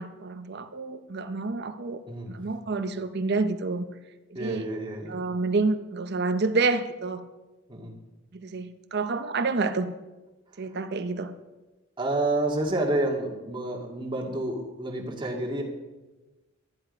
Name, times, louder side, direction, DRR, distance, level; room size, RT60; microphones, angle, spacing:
voice 1, 0.0-2.0 2.3-3.8 4.4-4.7 5.1-7.2 8.3-9.9 10.6-11.3, right 3 dB, 55° right, 0.7 m, -28 dB
voice 2, 2.1-2.4 4.3-5.2 7.7-7.9 10.5-10.8 12.0-15.6, right 2 dB, 25° right, 2.0 m, -29 dB
12.5 x 10.5 x 5.2 m
head